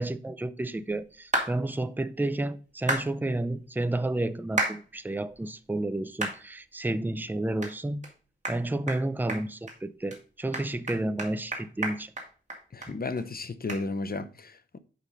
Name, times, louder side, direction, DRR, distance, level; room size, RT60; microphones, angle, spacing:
voice 1, 0.0-8.0 8.5-12.1, right 2 dB, 10° right, 0.5 m, -31 dB
sound 1, 1.3-1.5 2.9-3.1 4.6-4.8 5.3-5.4 6.2-6.4 6.9-7.0 7.6-7.7 8.0-8.1 8.4-8.6 8.9-9.0 9.3-9.8 10.1-10.2 10.5-12.9 13.2-13.3 13.7-13.8, right 1 dB, 35° right, 2.0 m, -30 dB
voice 2, 12.7-14.8, left 3 dB, 50° left, 0.7 m, -34 dB
5.5 x 5.1 x 5.2 m
wide cardioid pair, 65°, 20 cm